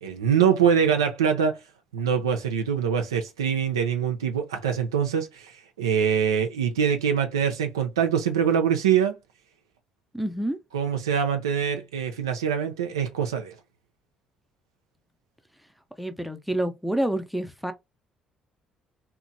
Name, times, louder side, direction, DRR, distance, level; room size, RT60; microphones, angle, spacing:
voice 1, 0.0-1.6 1.9-9.2 10.7-13.6, right 7 dB, 75° right, 0.3 m, -24 dB
voice 2, 10.1-10.6 16.0-17.7, right 1 dB, ahead, 0.5 m, -28 dB
2.8 x 2.0 x 2.5 m
figure-of-eight pair, 50°, 2 cm